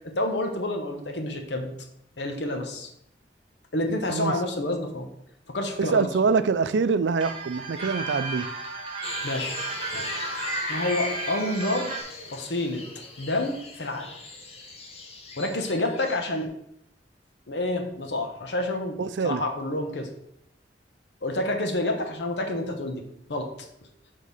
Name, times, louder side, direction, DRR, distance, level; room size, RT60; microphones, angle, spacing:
voice 1, 0.2-1.7 2.2-2.9 3.7-5.1 5.5-6.1 9.2-9.6 9.9-10.2 10.7-11.9 12.3-12.8 13.2-14.2 15.4-16.5 17.5-19.0 19.2-20.1 21.2-23.0 23.3-23.5, left 1 dB, 75° left, 4 dB, 1.0 m, -28 dB
voice 2, 5.8-8.5 19.0-19.4, right 5 dB, 80° right, 13 dB, 0.4 m, -24 dB
sound 1, 7.2-12.0, right 3 dB, 30° right, 1.2 m, -34 dB
sound 2, 9.0-16.4, left 2 dB, 35° left, 1.0 m, -38 dB
6.5 x 3.7 x 5.3 m, 0.75 s
head